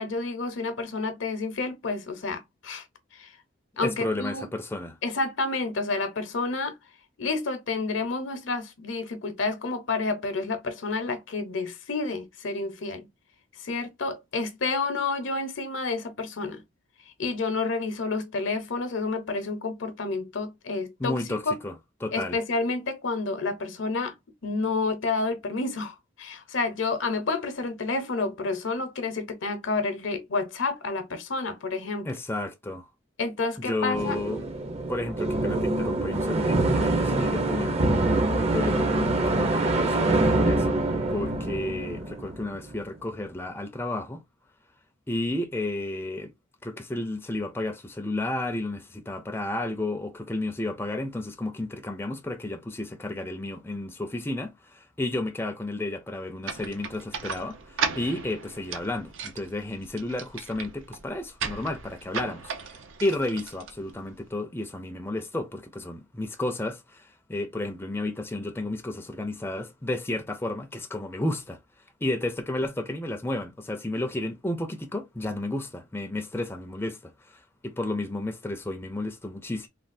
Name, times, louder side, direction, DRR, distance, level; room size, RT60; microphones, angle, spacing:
voice 1, 0.0-2.8 3.1-3.3 3.8-4.5 5.0-6.7 7.2-13.1 13.6-16.6 17.2-21.6 22.1-24.1 24.4-32.1 33.2-34.2 37.1-37.3, left 3 dB, 70° left, 0.7 m, -29 dB
voice 2, 3.8-5.0 21.0-21.7 22.0-22.4 32.0-32.9 33.6-34.4 34.9-37.8 38.3-40.8 41.1-44.2 45.1-46.3 46.6-71.6 72.0-79.7, left 2 dB, 10° left, 0.4 m, -32 dB
sound 1, 33.9-42.7, right 2 dB, 30° right, 0.6 m, -25 dB
sound 2, 56.4-64.3, right 5 dB, 75° right, 0.6 m, -36 dB
3.3 x 2.3 x 2.5 m
head